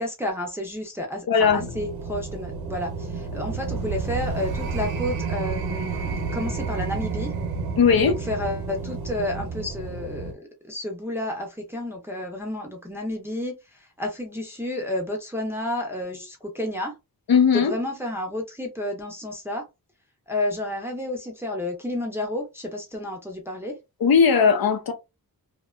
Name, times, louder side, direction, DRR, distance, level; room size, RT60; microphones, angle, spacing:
voice 1, 0.0-7.3 8.0-16.9 17.5-19.6 20.3-23.8, left 1 dB, 5° right, 0.5 m, -31 dB
voice 2, 1.3-1.6 7.8-8.1 17.3-17.7 24.0-24.9, left 6 dB, 70° left, 0.7 m, -18 dB
sound 1, 1.4-10.3, right 4 dB, 75° right, 0.8 m, -30 dB
2.7 x 2.2 x 2.3 m
wide cardioid pair, 150°, 37 cm